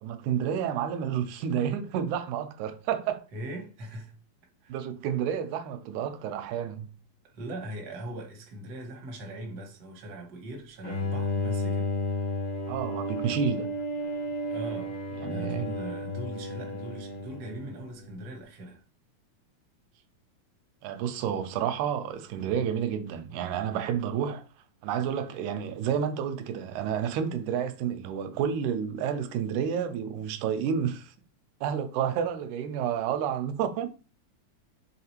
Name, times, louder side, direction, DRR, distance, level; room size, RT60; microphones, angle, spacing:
voice 1, 0.0-3.2 4.7-6.9 12.7-13.7 15.2-15.7 20.8-24.4 24.8-31.1 31.6-33.9, right 8 dB, 85° right, 2.0 m, -30 dB
voice 2, 3.3-4.2 4.6-4.8 7.2-12.2 14.5-18.8 23.7-23.9, right 1 dB, 60° right, 1.0 m, -40 dB
Bowed string instrument, 10.8-18.1, left 1 dB, 70° left, 1.9 m, -32 dB
4.8 x 3.5 x 2.8 m
omnidirectional pair, 3.4 m